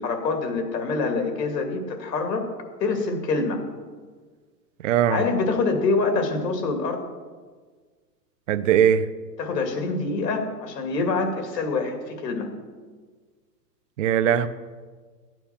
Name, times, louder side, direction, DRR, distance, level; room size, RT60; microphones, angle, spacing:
voice 1, 0.0-2.4 2.8-3.6 5.1-7.0 9.4-12.5, left 3 dB, 85° left, 5 dB, 2.5 m, -25 dB
voice 2, 4.8-5.2 8.5-9.1 14.0-14.5, right 9 dB, 50° right, 10 dB, 0.6 m, -20 dB
13.0 x 9.1 x 5.8 m, 1.5 s
supercardioid pair, 170°, 48 cm